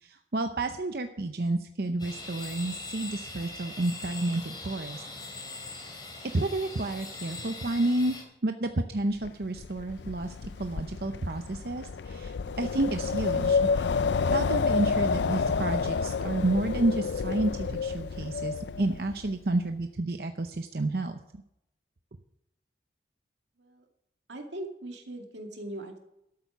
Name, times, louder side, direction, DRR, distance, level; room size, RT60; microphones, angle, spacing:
voice 1, 0.0-5.0 5.7-5.8 6.3-8.2 8.4-13.9 14.2-21.4, right 2 dB, 60° right, 7 dB, 0.7 m, -30 dB
sound 1, 2.0-8.2, left 2 dB, 25° left, 2.9 m, -41 dB
Wind, 9.2-19.3, left 5 dB, 80° left, 0.4 m, -29 dB
voice 2, 24.3-26.0, right 1 dB, 85° right, 3 dB, 2.3 m, -40 dB
12.5 x 8.7 x 6.0 m, 0.82 s
head